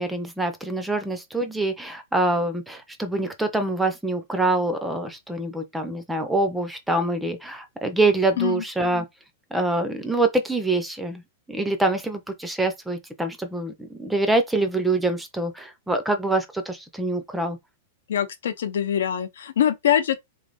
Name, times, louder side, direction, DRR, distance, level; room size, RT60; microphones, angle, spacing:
voice 1, 0.0-9.1 9.5-11.2 11.5-17.6, right 2 dB, 5° right, 0.5 m, -25 dB
voice 2, 18.1-20.2, left 9 dB, 90° left, 0.8 m, -23 dB
3.7 x 3.2 x 3.8 m
supercardioid pair, 180°, 0 cm